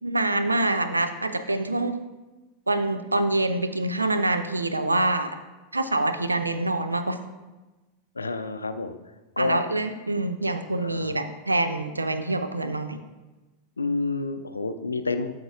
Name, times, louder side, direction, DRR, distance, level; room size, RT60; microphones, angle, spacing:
voice 1, 0.0-2.0 2.7-5.3 5.7-7.2 9.4-13.0, right 2 dB, 80° right, 9 dB, 0.5 m, -25 dB
voice 2, 8.2-9.0 9.4-9.6 10.8-11.2 13.8-15.3, left 3 dB, 80° left, 10 dB, 0.4 m, -29 dB
12.5 x 6.3 x 2.4 m, 1.2 s
figure-of-eight pair, 90°, 0 cm